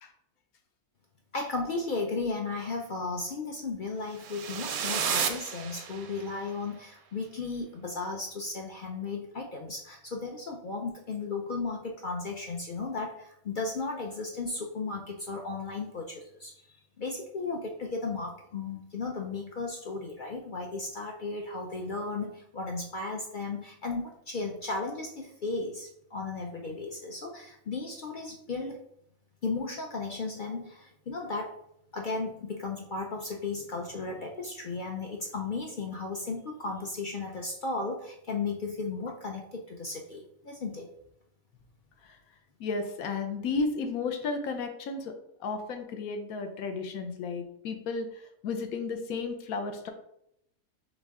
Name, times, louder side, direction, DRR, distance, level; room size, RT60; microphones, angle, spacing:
voice 1, 1.3-28.8 29.4-31.6 31.9-40.9, left 3 dB, 65° left, 1 dB, 0.5 m, -35 dB
sound 1, 4.2-6.4, right 7 dB, 85° right, 1.1 m, -32 dB
voice 2, 42.6-45.1 45.4-49.9, left 4 dB, 85° left, 6 dB, 1.2 m, -33 dB
4.0 x 3.7 x 3.5 m, 0.75 s
omnidirectional pair, 1.5 m